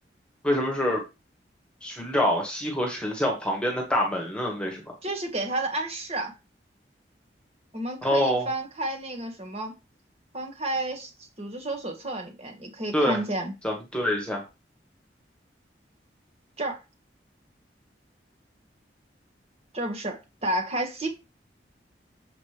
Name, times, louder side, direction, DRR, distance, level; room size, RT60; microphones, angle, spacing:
voice 1, 0.4-1.0 1.8-4.8 8.0-8.5 12.9-13.2 13.6-14.4, left 1 dB, 5° left, 1.5 m, -26 dB
voice 2, 5.0-6.4 7.7-9.7 10.3-11.1 11.4-13.5 16.6-16.8 19.7-21.1, right 1 dB, 35° right, 1.8 m, -31 dB
7.3 x 5.1 x 3.3 m
head